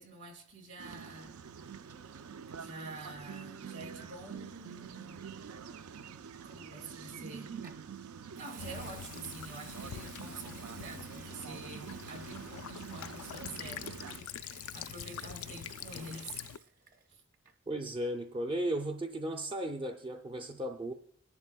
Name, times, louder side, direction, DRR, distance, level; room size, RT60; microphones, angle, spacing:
voice 1, 0.0-1.4 2.6-5.2 6.4-7.6 8.3-16.5 17.1-17.2, right 2 dB, 60° right, 2.2 m, -47 dB
sound 1, 0.8-14.2, right 7 dB, 85° right, 0.4 m, -46 dB
Water tap faucet / Sink (filling or washing) / Liquid, 7.6-7.9 8.3-17.1 17.3-17.7, right 6 dB, 40° right, 0.9 m, -55 dB
Child speech kid speaking / Bird vocalization bird call bird song / Stream, 8.6-16.6, left 9 dB, 80° left, 0.3 m, -45 dB
voice 2, 17.7-20.9, right 1 dB, 25° right, 0.4 m, -35 dB
24.0 x 11.0 x 2.2 m
head